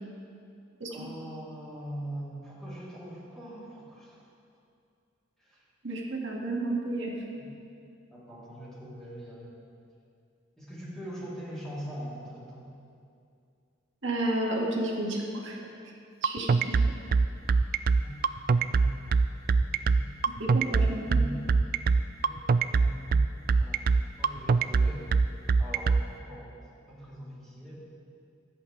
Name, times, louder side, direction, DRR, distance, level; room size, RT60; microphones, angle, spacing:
voice 1, 0.9-4.2 5.4-5.6 7.4-7.5 8.1-9.5 10.6-12.7 17.9-18.1 18.6-19.0 19.6-20.1 21.0-21.4 22.2-22.4 22.7-23.2 23.6-23.9 24.2-25.0 25.6-26.5 26.9-27.8, right 1 dB, ahead, -10 dB, 3.3 m, -42 dB
voice 2, 5.8-7.1 14.0-15.6 16.2-16.8 20.4-21.2, right 1 dB, 70° right, -2 dB, 2.0 m, -31 dB
sound 1, 16.2-26.0, right 4 dB, 45° right, 0.3 m, -22 dB
24.5 x 8.4 x 3.3 m, 2.5 s
head